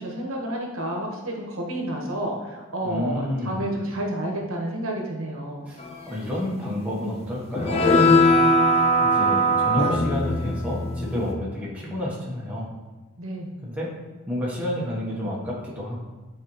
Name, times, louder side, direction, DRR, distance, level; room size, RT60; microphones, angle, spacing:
voice 1, 0.0-5.7 13.2-13.7, right 1 dB, 70° right, -1 dB, 1.2 m, -30 dB
voice 2, 2.8-3.6 5.7-5.8 6.1-12.7 13.6-13.9 14.3-16.0, left 1 dB, 5° right, -6 dB, 1.1 m, -30 dB
sound 1, 7.6-11.3, equal, 25° left, 0.4 m, -20 dB
8.8 x 4.3 x 3.1 m, 1.2 s
head